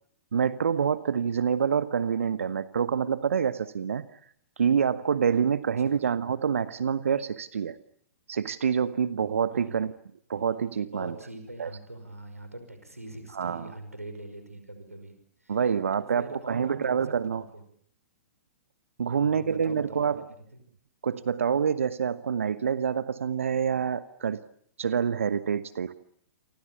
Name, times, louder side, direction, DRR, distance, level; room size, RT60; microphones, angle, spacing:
voice 1, 0.3-4.1 4.6-7.8 8.3-9.9 10.3-11.1 11.6-11.7 13.3-13.7 15.5-17.4 19.0-20.2 21.0-24.4 24.8-25.9, right 7 dB, 65° right, 15 dB, 1.1 m, -27 dB
voice 2, 10.9-15.1 15.4-15.6 16.0-17.0 17.3-17.4 19.1-20.1 20.5-20.6, right 1 dB, 85° right, 8 dB, 5.5 m, -43 dB
29.5 x 24.5 x 7.2 m, 0.67 s
figure-of-eight pair, 110°, 8 cm